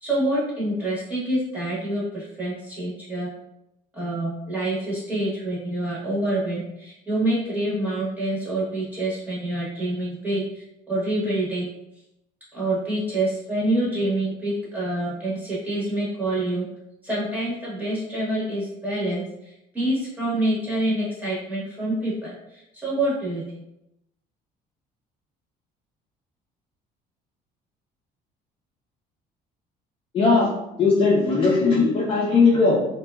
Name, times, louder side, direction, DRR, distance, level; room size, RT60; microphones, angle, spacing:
voice 1, 0.0-3.3 3.9-10.6 10.9-11.7 12.5-16.6 17.0-23.4, right 1 dB, 10° right, -8 dB, 0.9 m, -26 dB
voice 2, 30.1-30.5 30.8-32.8, left 4 dB, 30° left, -5 dB, 0.5 m, -18 dB
2.8 x 2.2 x 2.2 m, 0.86 s
cardioid pair, 160°, 17 cm